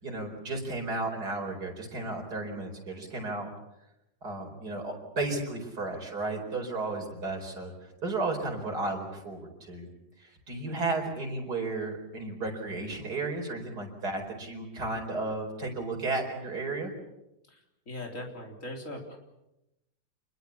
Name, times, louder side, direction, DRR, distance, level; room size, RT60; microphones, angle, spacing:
voice 1, 0.0-3.5 4.2-7.7 8.0-9.9 10.2-16.9, right 2 dB, 60° right, 2 dB, 5.2 m, -33 dB
voice 2, 17.9-19.2, left 1 dB, 45° left, 2 dB, 4.1 m, -40 dB
27.0 x 21.5 x 7.1 m, 0.89 s
omnidirectional pair, 1.9 m